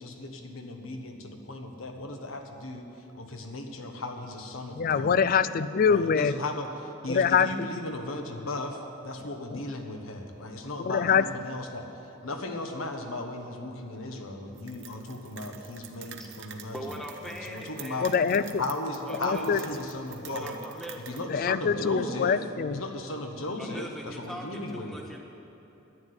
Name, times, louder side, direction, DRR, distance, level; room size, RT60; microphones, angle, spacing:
voice 1, 0.0-2.8 3.1-5.1 5.8-8.8 9.0-16.8 17.3-18.1 18.6-20.6 21.1-22.4 22.6-24.9, left 2 dB, 80° left, 4 dB, 1.4 m, -36 dB
voice 2, 4.7-6.3 7.1-7.5 9.5-9.6 10.8-11.2 18.0-18.6 19.2-19.6 21.3-22.8, left 6 dB, 45° left, 14 dB, 0.3 m, -24 dB
sound 1, 14.6-21.2, right 8 dB, 60° right, 0.9 m, -47 dB
voice 3, 16.7-18.1 19.0-19.7 20.2-21.2 23.6-25.2, equal, ahead, 0 dB, 1.4 m, -41 dB
10.5 x 9.8 x 9.7 m, 2.9 s
head